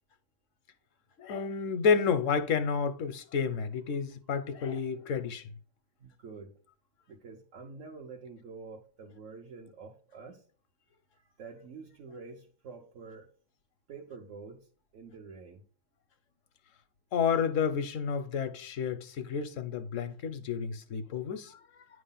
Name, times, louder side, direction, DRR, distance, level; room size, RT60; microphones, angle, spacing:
voice 1, 1.2-5.5 17.1-21.6, left 6 dB, 85° left, 1.1 m, -30 dB
voice 2, 6.0-6.6 7.1-10.4 11.1-13.3 13.9-14.7 14.9-15.6, right 4 dB, 80° right, 1.3 m, -47 dB
9.7 x 3.3 x 5.5 m
omnidirectional pair, 1.3 m